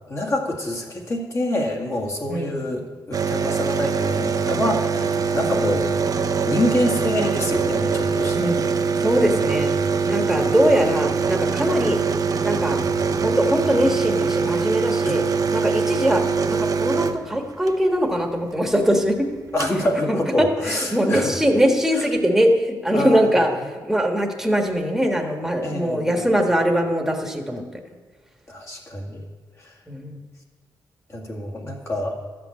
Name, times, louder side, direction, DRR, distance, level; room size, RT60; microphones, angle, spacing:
voice 1, 0.1-5.9 6.4-8.5 9.2-9.9 10.2-10.6 15.0-15.6 19.5-21.4 21.9-22.0 22.9-23.4 25.6-26.3 28.5-29.2 29.6-29.7 31.1-32.2, left 1 dB, 35° left, -1 dB, 2.0 m, -27 dB
voice 2, 2.3-2.6 8.3-8.6 9.0-9.7 10.0-12.0 12.4-12.8 13.2-15.2 15.5-16.2 16.5-19.3 20.1-20.5 20.9-23.5 23.9-27.6 29.9-30.2, equal, 5° right, 2 dB, 1.5 m, -21 dB
sound 1, 3.1-17.7 19.1-19.2 19.3-19.8, right 5 dB, 50° right, 0.7 m, -23 dB
sound 2, 4.9-14.5, left 1 dB, 55° left, 2.3 m, -38 dB
12.5 x 6.0 x 8.6 m, 1.4 s
wide cardioid pair, 115°, 8 cm